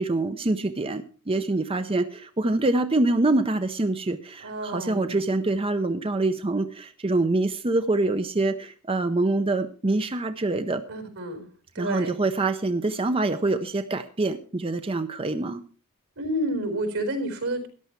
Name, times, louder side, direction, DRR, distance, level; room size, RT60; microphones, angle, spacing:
voice 1, 0.0-10.8 11.8-15.6, right 2 dB, 25° right, 9 dB, 0.6 m, -25 dB
voice 2, 4.4-5.2 10.9-11.4 11.7-12.2 16.2-17.7, right 1 dB, 85° right, 6 dB, 4.3 m, -29 dB
14.0 x 10.5 x 4.5 m, 0.38 s
head